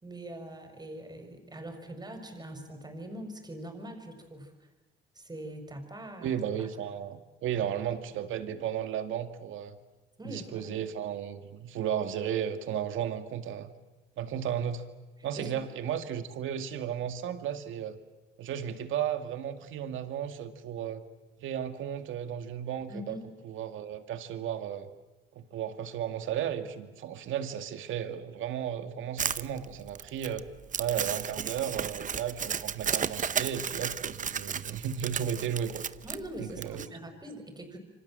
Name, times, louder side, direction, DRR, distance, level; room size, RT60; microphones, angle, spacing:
voice 1, 0.0-4.7 5.1-6.3 6.6-6.7 7.5-7.6 10.2-10.7 15.4-15.5 22.9-23.2 36.0-37.8, right 1 dB, 20° right, 6 dB, 6.0 m, -42 dB
voice 2, 6.2-9.8 10.2-13.7 14.2-14.9 15.2-18.0 18.4-21.0 21.4-23.2 23.4-24.9 25.3-30.4 30.8-35.8 36.4-36.9, right 9 dB, 80° right, 9 dB, 2.2 m, -34 dB
Crumpling crinkling, 29.2-36.9, right 7 dB, 40° right, 0.9 m, -34 dB
28.0 x 25.0 x 7.7 m, 1.2 s
cardioid pair, 90°, 20 cm